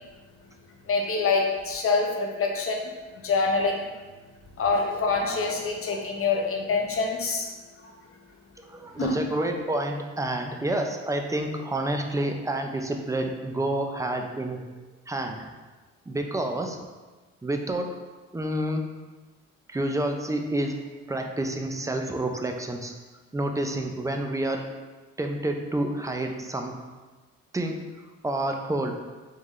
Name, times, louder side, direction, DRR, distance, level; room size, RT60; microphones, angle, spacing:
voice 1, 0.9-2.8 3.2-3.8 4.6-7.5 9.0-9.2, left 4 dB, 45° left, 1 dB, 0.8 m, -25 dB
voice 2, 8.7-14.6 15.1-15.5 16.1-16.8 17.4-17.9 18.3-18.8 19.7-20.8 21.1-22.9 23.3-24.6 25.2-26.7 27.5-27.8 28.2-29.0, right 1 dB, 10° right, 3 dB, 0.4 m, -28 dB
3.7 x 3.5 x 3.2 m, 1.3 s
cardioid pair, 90°, 30 cm